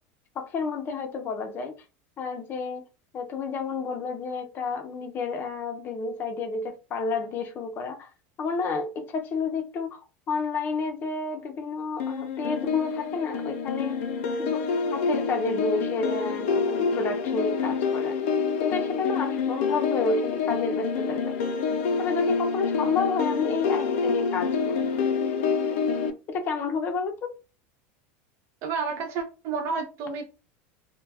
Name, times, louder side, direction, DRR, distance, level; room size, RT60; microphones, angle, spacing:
voice 1, 0.4-1.7 2.2-2.8 3.1-8.1 8.4-10.0 10.3-14.0 14.4-14.6 14.9-18.2 18.6-21.5 22.0-25.0 26.3-27.3, left 4 dB, 30° left, 0.6 m, -30 dB
sound 1, 12.0-26.1, left 5 dB, 85° left, 0.5 m, -27 dB
voice 2, 28.6-30.2, right 5 dB, 45° right, 0.4 m, -30 dB
2.2 x 2.2 x 3.3 m
supercardioid pair, 150°, 7 cm